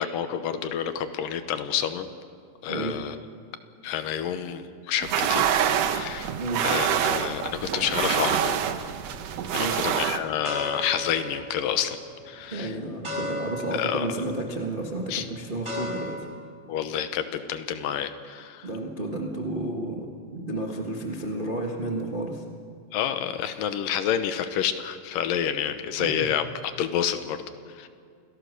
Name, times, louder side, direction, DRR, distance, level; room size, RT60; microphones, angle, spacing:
voice 1, 0.0-2.1 2.6-3.2 3.8-5.5 5.9-6.3 6.6-8.6 9.5-12.0 12.3-12.8 13.7-14.1 15.1-15.3 16.7-18.7 22.9-27.9, left 9 dB, 75° left, 10 dB, 2.6 m, -29 dB
sound 1, 5.0-10.2, right 9 dB, 70° right, 1.5 m, -26 dB
sound 2, 9.0-9.3 9.8-16.2, left 1 dB, 10° right, 4.1 m, -37 dB
voice 2, 9.5-9.9 12.5-16.2 18.6-20.1 20.3-22.4 26.0-26.3, right 2 dB, 50° right, 0 dB, 0.6 m, -31 dB
27.5 x 17.5 x 6.6 m, 2.2 s
omnidirectional pair, 4.1 m